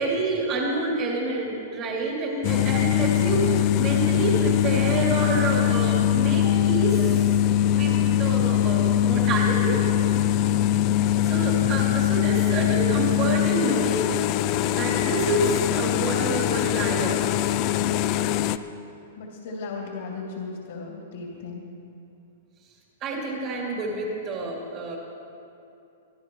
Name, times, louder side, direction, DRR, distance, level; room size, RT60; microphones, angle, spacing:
voice 1, 0.0-7.3 7.7-9.8 11.2-14.2 14.7-17.3 23.0-25.0, right 2 dB, 25° right, -2 dB, 2.9 m, -28 dB
sound 1, 2.4-18.6, left 12 dB, 35° left, 0.4 m, -22 dB
voice 2, 19.2-21.6, left 4 dB, 65° left, -2 dB, 2.7 m, -36 dB
23.0 x 13.5 x 3.1 m, 2.7 s
hypercardioid pair, 160°, 0 cm